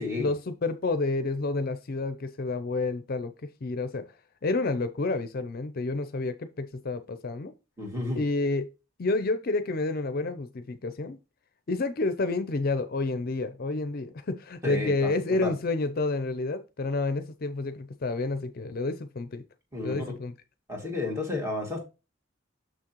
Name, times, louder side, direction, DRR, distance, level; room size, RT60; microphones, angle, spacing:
voice 1, 0.2-3.3 3.6-4.0 4.4-7.5 8.2-8.7 9.0-11.2 11.7-19.4 19.8-20.3, left 3 dB, 50° left, 0.5 m, -29 dB
voice 2, 7.8-8.2 14.6-15.5 19.7-20.0 20.7-21.9, left 2 dB, 15° right, 2.2 m, -32 dB
6.7 x 6.2 x 2.9 m
head